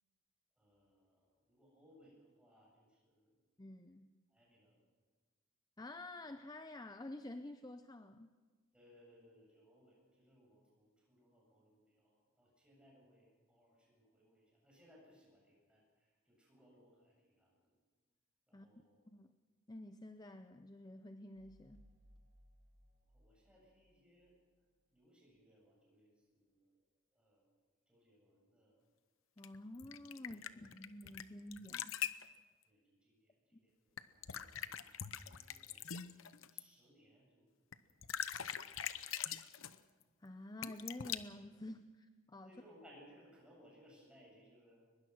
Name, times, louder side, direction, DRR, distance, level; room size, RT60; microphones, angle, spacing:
voice 1, 0.6-3.4 4.3-4.8 8.7-17.8 18.5-19.0 23.1-24.3 24.9-26.8 27.1-27.6 27.9-28.8 30.2-30.7 32.7-35.9 36.5-37.5 37.8-38.0 38.5-39.1 42.4-44.8, equal, 5° right, -3 dB, 7.8 m, -66 dB
voice 2, 3.6-4.1 5.8-8.3 18.5-18.7 19.1-19.3 19.7-21.8 29.4-32.0 40.2-42.6, left 1 dB, 20° left, 9 dB, 0.6 m, -50 dB
sound 1, 21.3-24.7, equal, 80° right, 3.0 m, -67 dB
sound 2, 29.4-31.2 31.5-32.2 34.0-36.6 37.7-37.8 38.0-39.8 40.6-41.2, left 9 dB, 85° left, 0.8 m, -43 dB
22.5 x 21.0 x 6.2 m, 1.4 s
head